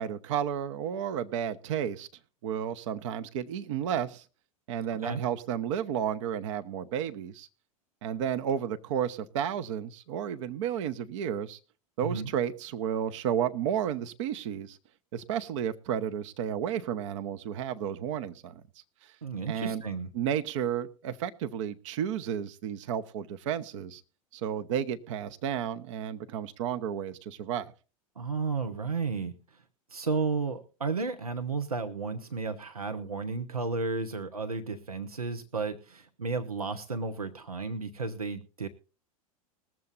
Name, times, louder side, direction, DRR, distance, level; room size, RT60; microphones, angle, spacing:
voice 1, 0.0-2.1 2.4-4.2 4.7-7.5 8.0-11.6 12.0-14.8 15.1-18.6 19.0-19.1 19.5-19.8 20.1-24.0 24.3-27.7, right 9 dB, 55° right, 11 dB, 1.0 m, -32 dB
voice 2, 19.2-20.1 28.2-29.6 29.9-38.7, right 4 dB, 85° right, 8 dB, 1.0 m, -33 dB
20.5 x 7.6 x 4.1 m, 0.35 s
figure-of-eight pair, 85°, 19 cm